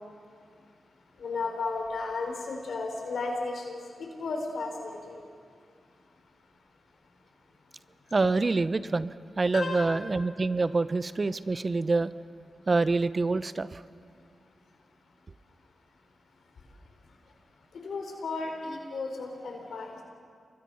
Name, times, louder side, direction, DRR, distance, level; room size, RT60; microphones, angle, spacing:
voice 1, 1.2-3.8 4.1-5.1 9.5-9.9 17.8-20.0, left 3 dB, 80° left, 2 dB, 4.6 m, -34 dB
voice 2, 8.1-12.1 12.7-13.8, right 3 dB, 45° right, 15 dB, 0.9 m, -26 dB
28.5 x 23.5 x 5.7 m, 2.2 s
cardioid pair, 45°, 0 cm